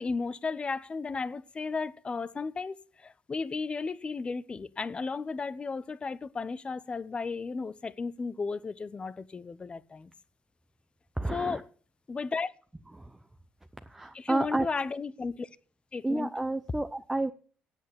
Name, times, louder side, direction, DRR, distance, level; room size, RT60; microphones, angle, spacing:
voice 1, 0.0-10.1 11.3-11.6 12.1-12.5 14.1-15.5 15.9-16.3, left 4 dB, 30° left, 0.8 m, -34 dB
voice 2, 11.2-11.6 13.0-13.1 13.9-14.7 16.0-17.3, right 2 dB, 10° right, 0.7 m, -30 dB
8.8 x 7.9 x 8.7 m
cardioid pair, 95°, 4 cm